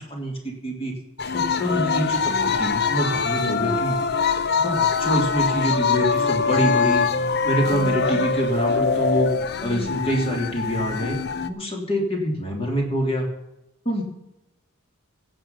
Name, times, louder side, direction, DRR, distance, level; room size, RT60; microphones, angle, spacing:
voice 1, 0.1-0.9 1.6-4.0 4.6-7.0 7.4-9.3 9.6-13.3 13.8-14.0, equal, 25° left, 1 dB, 3.2 m, -25 dB
sound 1, 1.2-11.5, left 5 dB, 50° left, 0.7 m, -23 dB
16.0 x 7.7 x 5.7 m, 0.90 s
head